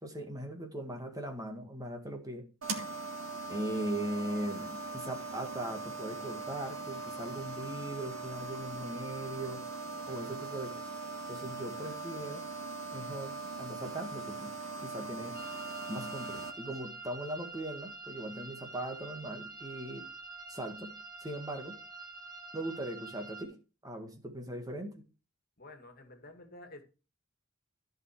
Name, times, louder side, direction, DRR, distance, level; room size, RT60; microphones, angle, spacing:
voice 1, 0.0-2.5 3.5-9.7 10.1-10.8 11.3-12.4 12.9-14.5 14.8-15.4 15.9-20.1 20.5-21.8 22.5-23.6 23.8-25.0, right 1 dB, 20° right, 1.7 m, -39 dB
sound 1, 2.6-16.5, right 3 dB, 90° right, 1.9 m, -41 dB
sound 2, 15.3-23.4, right 3 dB, 40° right, 2.3 m, -46 dB
voice 2, 25.6-26.8, left 2 dB, 50° left, 2.2 m, -50 dB
14.0 x 5.2 x 4.6 m
head